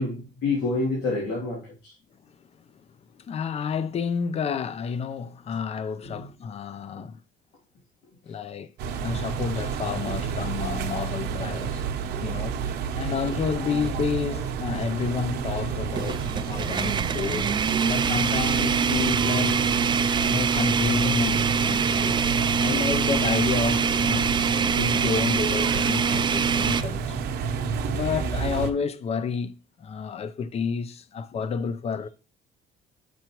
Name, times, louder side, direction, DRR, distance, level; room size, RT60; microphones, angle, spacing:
voice 1, 0.0-1.9 6.1-6.2 6.9-7.0, left 3 dB, 85° left, 2.8 m, -28 dB
voice 2, 2.3-2.6 3.2-7.2 8.2-8.7 9.0-11.8 12.2-12.6 13.0-17.5 17.8-19.6 20.2-22.2 22.5-24.3 24.7-27.2 27.8-29.5 29.8-32.1, left 6 dB, 40° left, 0.6 m, -30 dB
sound 1, 8.8-28.7, right 6 dB, 75° right, 0.9 m, -30 dB
sound 2, 13.2-13.4 13.9-14.0 16.0-26.8, right 6 dB, 25° right, 0.4 m, -24 dB
6.9 x 6.1 x 3.0 m
cardioid pair, 110°, 17 cm